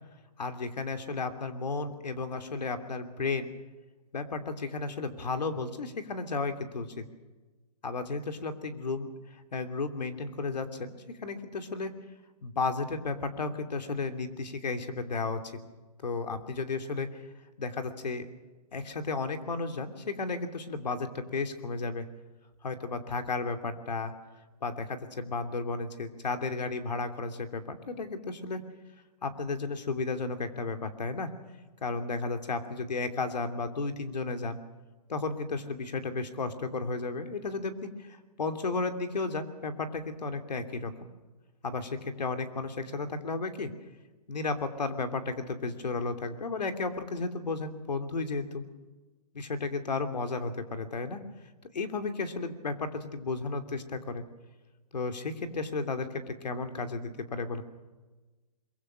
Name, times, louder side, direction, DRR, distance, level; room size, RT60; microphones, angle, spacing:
voice 1, 0.4-3.5 4.1-7.0 7.8-11.9 12.4-15.4 16.0-17.2 17.6-18.3 18.7-22.0 22.6-24.1 24.6-28.6 29.2-31.3 31.8-34.6 35.1-41.1 41.6-43.7 44.3-48.6 49.3-51.2 51.7-54.2 54.9-57.6, left 3 dB, 85° left, 7 dB, 3.1 m, -33 dB
23.5 x 22.5 x 6.3 m, 1.2 s
hypercardioid pair, 160°, 21 cm